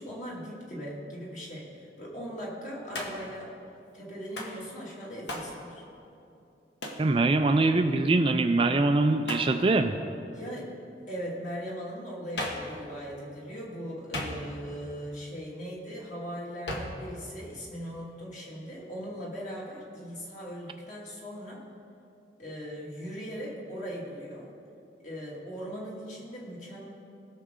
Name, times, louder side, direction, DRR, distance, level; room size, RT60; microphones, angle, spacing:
voice 1, 0.0-3.5 3.9-5.8 10.3-10.7 11.1-21.6 22.4-24.5 25.0-26.9, equal, 40° left, -5 dB, 2.4 m, -39 dB
Hands, 2.9-3.4 4.4-4.6 5.3-5.6 6.8-7.1 9.2-9.6 12.4-12.7 14.1-14.7 16.7-17.0, left 1 dB, 75° left, 1.4 m, -36 dB
voice 2, 7.0-10.0, right 2 dB, 30° right, 7 dB, 0.3 m, -23 dB
19.0 x 6.5 x 3.8 m, 2.7 s
head